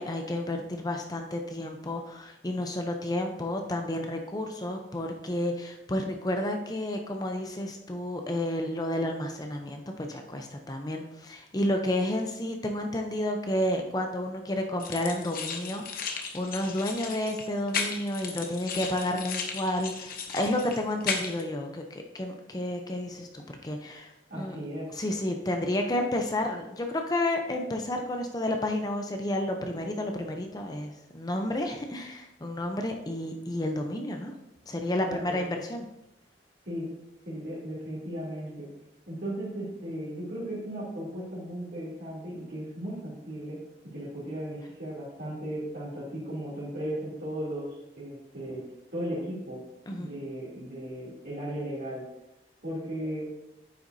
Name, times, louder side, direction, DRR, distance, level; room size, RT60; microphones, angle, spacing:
voice 1, 0.0-24.6 24.9-34.3 34.7-35.9 49.9-50.1, left 1 dB, 20° left, 4 dB, 0.6 m, -31 dB
sound 1, 14.8-21.4, left 5 dB, 55° left, 0.9 m, -35 dB
voice 2, 24.3-24.9 35.1-35.4 36.6-36.9 37.2-38.7 39.1-48.6 48.9-49.6 50.0-52.1 52.6-53.3, right 1 dB, 60° right, -9 dB, 2.8 m, -36 dB
9.3 x 7.6 x 2.7 m, 0.91 s
head